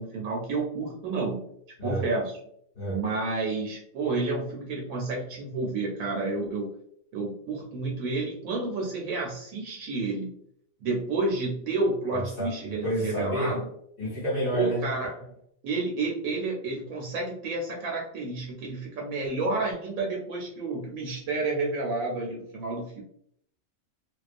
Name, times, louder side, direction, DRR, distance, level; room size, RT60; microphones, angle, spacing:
voice 1, 0.0-1.4 1.8-2.3 2.9-6.7 7.1-10.3 10.8-13.7 14.5-15.3 15.6-23.0, right 3 dB, 80° right, -1 dB, 1.0 m, -30 dB
voice 2, 12.1-12.5 12.8-13.6 14.0-14.9, equal, 50° left, -7 dB, 0.9 m, -29 dB
2.3 x 2.3 x 2.4 m, 0.68 s
omnidirectional pair, 1.4 m